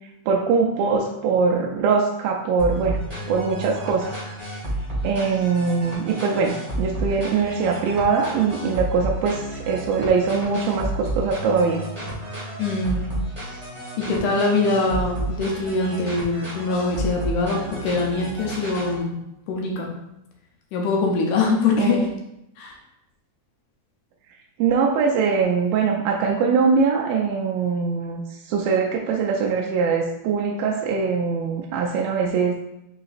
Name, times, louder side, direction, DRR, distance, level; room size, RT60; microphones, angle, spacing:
voice 1, 0.3-3.0 3.3-4.2 5.0-11.8 21.8-22.1 24.6-32.5, right 5 dB, 85° right, 0 dB, 2.3 m, -22 dB
sound 1, 2.6-19.0, right 1 dB, 65° right, 0.3 m, -31 dB
voice 2, 12.6-13.1 14.0-19.2 19.5-19.9 20.7-22.1 22.6-22.8, left 3 dB, 75° left, 0 dB, 1.9 m, -23 dB
5.6 x 3.9 x 2.5 m, 0.84 s
omnidirectional pair, 4.1 m